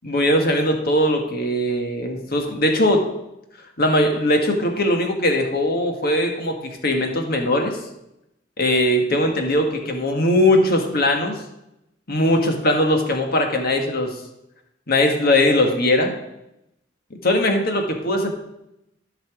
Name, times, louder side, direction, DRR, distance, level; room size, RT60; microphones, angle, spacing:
voice 1, 0.0-3.0 3.8-7.8 8.6-11.4 12.1-14.1 14.9-16.1 17.2-18.4, left 1 dB, 55° left, 3 dB, 1.6 m, -20 dB
14.0 x 5.9 x 5.0 m, 0.87 s
head